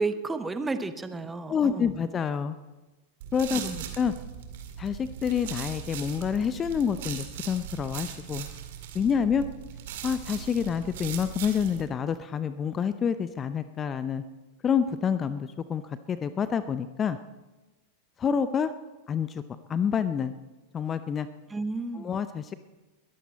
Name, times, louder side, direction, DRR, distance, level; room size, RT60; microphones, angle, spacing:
voice 1, 0.0-2.0 3.5-3.8 21.5-22.1, right 3 dB, 10° right, 10 dB, 1.1 m, -32 dB
voice 2, 1.5-2.6 3.3-3.7 4.0-4.1 4.8-8.5 8.9-9.5 10.0-14.2 14.6-15.8 16.1-17.2 18.2-18.7 19.1-19.4 19.7-20.3 20.7-21.3 21.9-22.6, left 7 dB, 25° left, 13 dB, 0.6 m, -27 dB
sound 1, 3.2-11.8, right 9 dB, 55° right, 2.1 m, -39 dB
21.5 x 14.0 x 4.2 m, 1.1 s
figure-of-eight pair, 90°, 0 cm